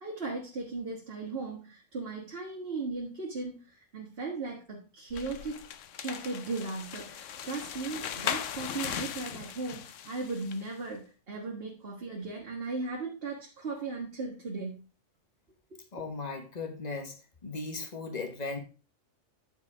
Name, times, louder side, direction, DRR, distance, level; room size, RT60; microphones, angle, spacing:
voice 1, 0.0-5.6 6.0-14.8 15.7-16.1, right 3 dB, 50° right, -2 dB, 1.7 m, -37 dB
sound 1, 5.1-10.7, left 9 dB, 80° left, 1.0 m, -38 dB
voice 2, 15.9-17.1 17.4-18.6, left 3 dB, 35° left, 5 dB, 1.4 m, -37 dB
10.0 x 4.5 x 4.8 m, 0.34 s
omnidirectional pair, 1.3 m